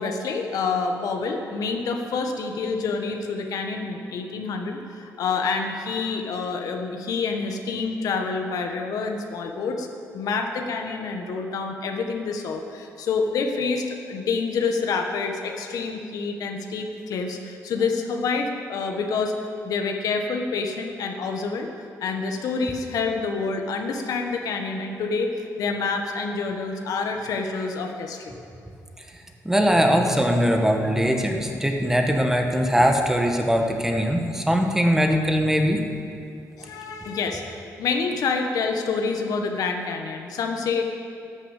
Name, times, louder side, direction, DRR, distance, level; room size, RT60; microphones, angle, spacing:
voice 1, 0.0-9.9 10.1-19.3 19.6-21.7 22.0-28.4 36.6-40.8, left 4 dB, 75° left, 4 dB, 1.4 m, -27 dB
voice 2, 29.1-35.8, equal, 5° right, 3 dB, 1.5 m, -21 dB
11.5 x 10.0 x 8.2 m, 2.5 s
cardioid pair, 100°, 6 cm